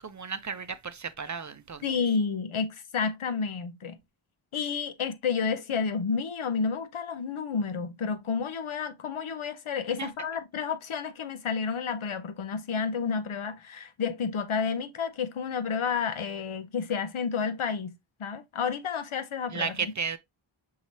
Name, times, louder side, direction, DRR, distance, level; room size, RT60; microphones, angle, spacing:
voice 1, 0.0-1.8 10.0-10.1 19.5-20.2, right 5 dB, 40° right, 0.5 m, -34 dB
voice 2, 1.8-4.0 4.5-19.8, left 5 dB, 80° left, 0.7 m, -30 dB
5.6 x 3.1 x 2.7 m
wide cardioid pair, 50°, 48 cm